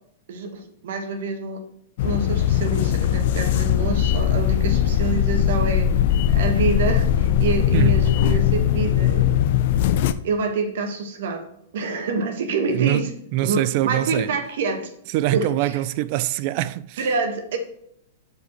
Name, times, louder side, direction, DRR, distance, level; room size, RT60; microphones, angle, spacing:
voice 1, 0.3-1.6 2.0-5.9 6.3-9.3 10.2-11.4 11.7-13.1 13.4-14.9 15.3-15.8 17.0-17.6, right 4 dB, 65° right, 1.3 m, -27 dB
sound 1, 2.0-10.1, left 10 dB, 60° left, 0.4 m, -20 dB
voice 2, 7.7-8.1 12.7-14.3 15.1-17.1, right 15 dB, 50° right, 0.3 m, -24 dB
12.0 x 5.0 x 3.0 m
hypercardioid pair, 115°, 0 cm